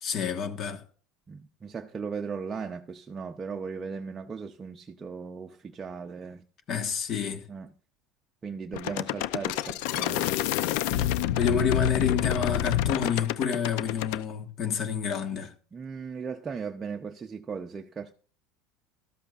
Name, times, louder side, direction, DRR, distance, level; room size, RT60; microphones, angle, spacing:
voice 1, 0.0-0.8 6.7-7.4 11.4-15.5, left 6 dB, 40° left, 1.4 m, -29 dB
voice 2, 1.3-6.4 7.5-7.7 8.4-10.3 15.7-18.1, right 5 dB, 20° right, 0.7 m, -37 dB
sound 1, 8.7-14.2, left 12 dB, 70° left, 0.6 m, -28 dB
13.5 x 12.5 x 2.5 m
cardioid pair, 145°, 0 cm